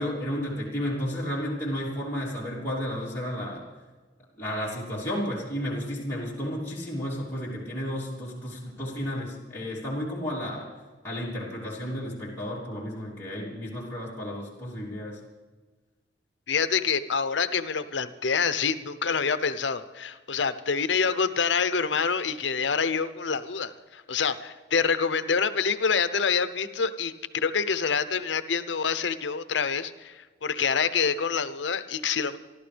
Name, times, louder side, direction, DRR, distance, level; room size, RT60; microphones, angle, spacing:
voice 1, 0.0-3.6 4.4-10.7 11.0-15.2, equal, 15° left, -7 dB, 3.2 m, -32 dB
voice 2, 16.5-32.4, left 5 dB, 75° left, 11 dB, 0.8 m, -26 dB
28.5 x 12.0 x 3.4 m, 1.3 s
head